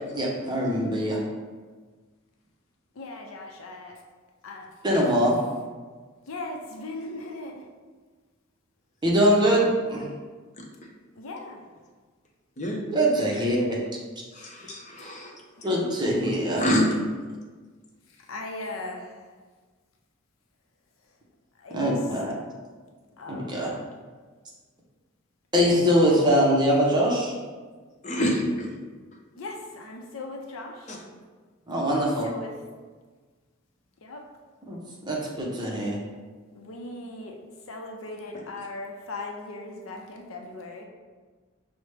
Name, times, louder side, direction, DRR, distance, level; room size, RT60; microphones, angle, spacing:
voice 1, 0.1-1.2 4.8-5.3 9.0-10.1 12.9-13.8 15.6-16.6 21.7-22.3 23.3-23.7 25.5-27.4 31.7-32.3 34.7-34.8 35.1-36.0, equal, 20° right, -3 dB, 0.7 m, -23 dB
voice 2, 2.9-4.0 4.4-4.7 6.3-7.7 11.2-11.7 15.6-15.8 18.1-19.2 21.6-22.0 23.2-23.5 29.4-31.0 32.0-32.5 34.0-34.2 36.5-37.4 37.7-40.8, left 2 dB, 80° left, 2 dB, 0.5 m, -38 dB
voice 3, 14.3-15.3 16.6-16.9 28.0-28.7 30.9-31.0, equal, 35° left, -1 dB, 0.6 m, -26 dB
5.9 x 2.1 x 3.2 m, 1.4 s
head